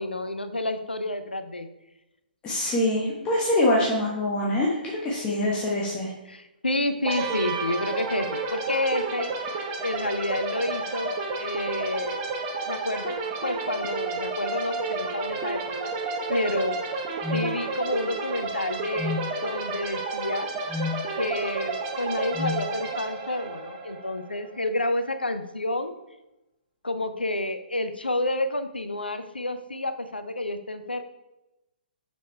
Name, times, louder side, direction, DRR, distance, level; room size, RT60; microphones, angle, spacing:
voice 1, 0.0-1.7 5.3-5.5 6.3-9.3 9.8-12.2 12.7-15.9 16.3-16.8 17.3-20.5 21.2-25.9 26.8-31.0, left 1 dB, 80° left, 9 dB, 0.6 m, -29 dB
voice 2, 2.4-6.1, left 1 dB, 20° left, -5 dB, 1.2 m, -24 dB
sound 1, 7.0-24.7, right 3 dB, 30° right, 0.9 m, -31 dB
sound 2, 17.2-17.5 19.0-19.3 20.7-21.0 22.3-22.6, left 4 dB, 5° right, 0.4 m, -29 dB
6.6 x 5.1 x 4.4 m, 0.95 s
figure-of-eight pair, 125°, 5 cm